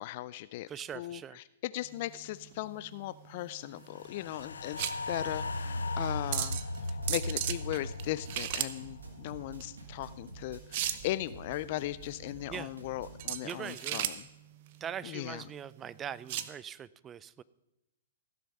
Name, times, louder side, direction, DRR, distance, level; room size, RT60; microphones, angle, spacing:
voice 1, 0.0-0.7 0.9-4.8 5.1-6.6 7.1-14.2 15.0-15.4, left 16 dB, 50° left, 16 dB, 0.3 m, -38 dB
voice 2, 0.7-1.4 12.5-12.7 13.4-14.0 14.8-17.4, right 8 dB, 20° right, 19 dB, 0.4 m, -41 dB
sound 1, 1.8-16.5, right 12 dB, 50° right, 0.7 m, -38 dB
sound 2, 3.9-10.3 10.6-10.7, left 2 dB, 85° left, 0.7 m, -37 dB
sound 3, 5.3-13.3, right 3 dB, 90° right, 2.3 m, -49 dB
16.0 x 6.9 x 5.3 m, 0.92 s
hypercardioid pair, 125°, 0 cm